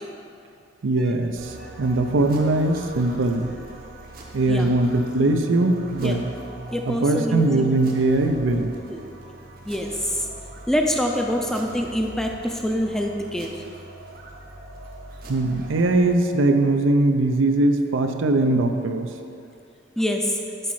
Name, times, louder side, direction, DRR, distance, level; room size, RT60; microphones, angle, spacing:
voice 1, 0.8-3.5 4.3-6.2 6.9-8.7 15.3-19.1, right 2 dB, 85° right, 5 dB, 0.5 m, -21 dB
sound 1, 1.4-16.1, right 2 dB, 50° right, 0.8 m, -40 dB
voice 2, 6.7-7.7 8.9-9.0 9.7-10.3 10.7-13.5 20.0-20.4, equal, 5° left, 2 dB, 0.4 m, -25 dB
7.7 x 4.2 x 4.8 m, 2.5 s
head